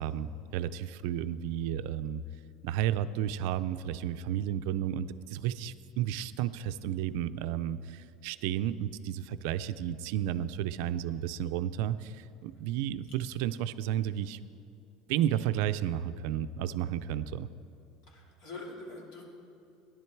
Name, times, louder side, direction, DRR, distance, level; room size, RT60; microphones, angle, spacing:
voice 1, 0.0-2.2 2.6-14.4 15.1-17.5, right 11 dB, 70° right, 13 dB, 0.4 m, -32 dB
voice 2, 18.1-19.2, left 2 dB, 55° left, -2 dB, 2.7 m, -44 dB
15.5 x 10.5 x 4.6 m, 2.6 s
cardioid pair, 155°, 0 cm